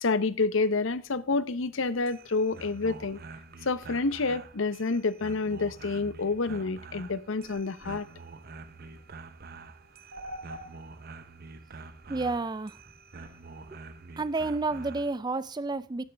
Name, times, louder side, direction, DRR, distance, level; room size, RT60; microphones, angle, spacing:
voice 1, 0.0-3.2 3.6-8.1, left 3 dB, 70° left, 0.7 m, -28 dB
sound 1, 1.9-15.2, right 3 dB, 50° right, 0.8 m, -47 dB
sound 2, 4.5-13.4, right 1 dB, 70° right, 3.0 m, -51 dB
voice 2, 12.1-12.8 14.2-16.0, right 3 dB, 20° right, 0.4 m, -30 dB
12.0 x 10.5 x 3.4 m
head